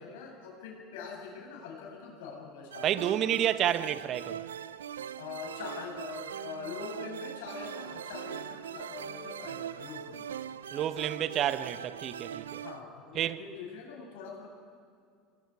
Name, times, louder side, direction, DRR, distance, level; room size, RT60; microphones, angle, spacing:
voice 1, 0.0-3.1 5.2-10.2 12.6-14.5, left 5 dB, 75° left, 7.2 m, -43 dB
sound 1, 2.7-12.8, right 9 dB, 90° right, 0.5 m, -41 dB
voice 2, 2.8-4.4 10.7-12.6 13.1-13.4, right 11 dB, 50° right, 0.9 m, -30 dB
28.5 x 20.0 x 4.8 m
hypercardioid pair, 80°, 0 cm